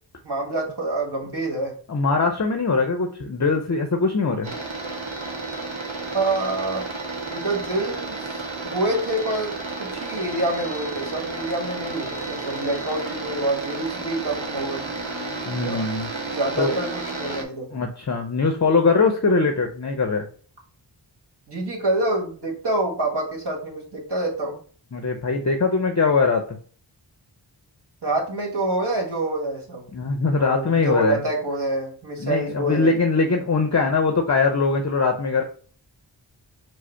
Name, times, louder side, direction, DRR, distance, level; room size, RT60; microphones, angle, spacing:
voice 1, 0.2-1.7 6.1-6.8 7.3-9.5 9.8-14.8 15.5-15.8 16.3-17.7 21.5-24.6 28.0-29.8 30.4-32.9, right 2 dB, 55° right, 0 dB, 1.6 m, -27 dB
voice 2, 1.9-4.5 15.5-16.1 16.6-16.7 17.7-20.3 24.9-26.4 29.9-31.2 32.2-35.4, left 4 dB, 35° left, 5 dB, 0.6 m, -21 dB
sound 1, 4.4-17.4, right 3 dB, 75° right, 1.0 m, -32 dB
4.9 x 2.1 x 4.4 m, 0.43 s
wide cardioid pair, 45°, 48 cm